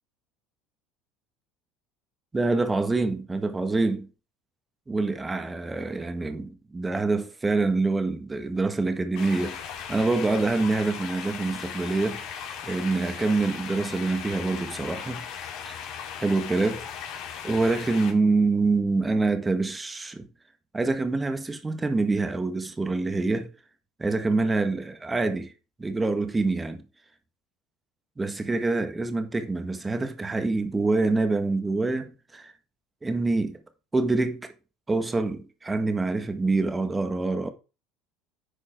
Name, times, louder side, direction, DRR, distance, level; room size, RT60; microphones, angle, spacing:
voice 1, 2.3-4.1 4.9-12.2 12.6-15.2 15.6-15.8 16.2-16.9 17.4-20.3 20.7-23.5 24.0-25.5 25.8-26.8 28.2-32.5 33.0-33.6 33.9-34.5 34.9-37.5, right 3 dB, 15° right, 1.5 m, -26 dB
sound 1, 9.2-18.1, left 8 dB, 65° left, 2.6 m, -37 dB
10.5 x 4.5 x 4.5 m
supercardioid pair, 95°, 0 cm